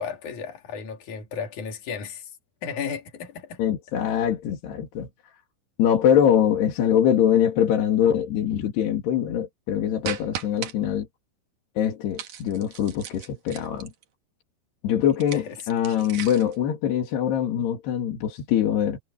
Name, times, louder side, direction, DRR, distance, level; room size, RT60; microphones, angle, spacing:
voice 1, 0.0-2.3 2.6-3.6 15.3-15.6, left 6 dB, 50° left, 4.4 m, -34 dB
voice 2, 3.6-5.1 5.8-11.1 11.8-13.9 14.8-19.0, left 9 dB, 85° left, 4.6 m, -23 dB
sound 1, 10.0-10.7 12.2-14.0 15.1-16.6, right 9 dB, 55° right, 2.3 m, -37 dB
omnidirectional pair, 4.6 m